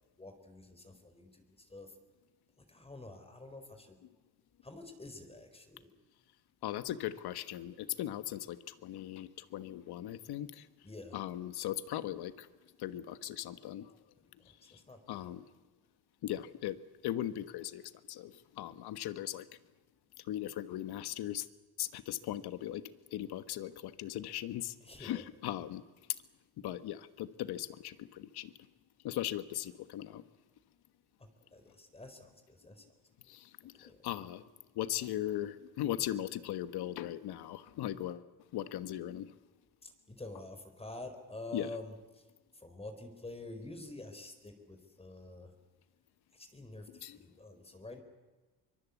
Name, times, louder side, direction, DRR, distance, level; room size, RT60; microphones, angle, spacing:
voice 1, 0.2-1.9 2.7-4.0 4.6-5.9 10.8-11.2 14.4-15.3 24.8-25.2 31.2-32.8 33.8-34.0 39.8-41.9 42.5-45.5 46.3-48.0, left 2 dB, 15° left, 7 dB, 4.1 m, -48 dB
voice 2, 6.6-10.7 11.1-12.5 12.8-13.9 15.1-15.4 16.2-17.8 18.1-19.5 20.3-21.5 21.8-22.8 23.1-25.8 26.6-28.5 29.0-30.2 33.3-34.4 34.7-38.3 38.5-39.3 41.5-41.8 46.9-47.2, left 12 dB, 80° left, 13 dB, 1.4 m, -38 dB
24.0 x 23.0 x 8.3 m, 1.2 s
cardioid pair, 105°, 38 cm